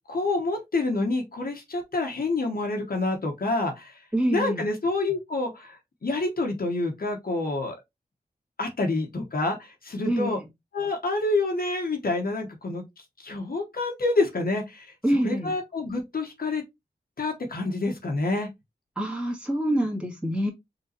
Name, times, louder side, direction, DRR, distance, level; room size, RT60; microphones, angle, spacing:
voice 1, 0.1-5.8 6.0-7.8 8.6-10.4 10.7-16.6 17.2-18.5, left 2 dB, 60° left, 1.1 m, -28 dB
voice 2, 4.1-4.6 10.1-10.3 15.0-15.5 19.0-20.5, right 1 dB, 5° right, 2.0 m, -26 dB
3.9 x 3.7 x 2.9 m
cardioid pair, 40°, 17 cm